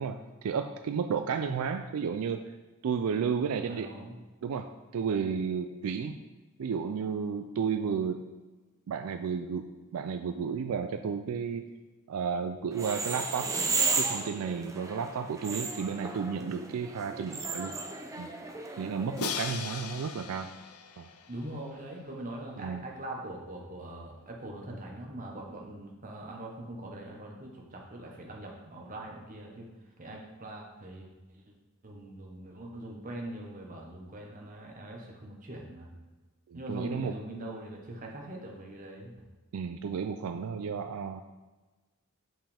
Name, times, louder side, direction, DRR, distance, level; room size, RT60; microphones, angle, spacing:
voice 1, 0.0-2.4 2.8-6.2 6.6-8.2 8.9-11.7 12.1-13.5 14.0-17.7 18.2-18.3 18.8-20.5 21.0-21.1 22.6-22.8 36.5-37.2 39.5-41.2, right 6 dB, 75° right, 7 dB, 0.3 m, -32 dB
voice 2, 3.6-4.1 21.3-29.7 30.0-31.1 31.3-31.5 31.8-35.9 36.5-39.1, right 1 dB, 35° right, 0 dB, 1.1 m, -42 dB
sound 1, 12.7-19.2, right 4 dB, 15° right, 0.5 m, -34 dB
Crash cymbal, 19.2-22.1, left 7 dB, 85° left, 0.5 m, -39 dB
7.4 x 5.6 x 3.4 m, 1.2 s
head